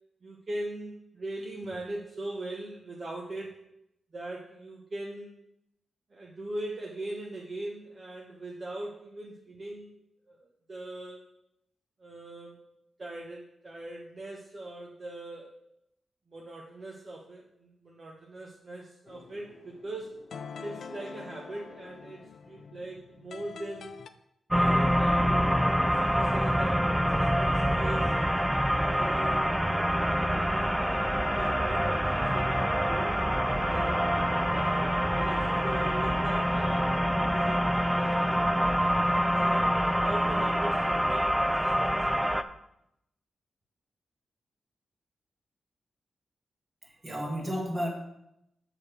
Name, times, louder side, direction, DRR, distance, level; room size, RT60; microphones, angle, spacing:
voice 1, 0.2-3.6 4.1-5.4 6.1-9.9 10.3-11.2 12.0-12.6 13.0-15.5 16.3-20.2 20.6-23.9 24.5-28.1 28.8-29.6 30.1-33.2 33.7-34.1 34.5-38.4 39.3-42.0, right 2 dB, 45° right, -2 dB, 1.2 m, -41 dB
sound 1, 19.1-24.1, left 6 dB, 70° left, 0.5 m, -45 dB
sound 2, 24.5-42.4, equal, 5° right, 0.4 m, -26 dB
voice 2, 46.8-47.9, equal, 25° right, 1 dB, 1.8 m, -32 dB
7.0 x 5.0 x 6.1 m, 0.81 s
cardioid pair, 90°, 0 cm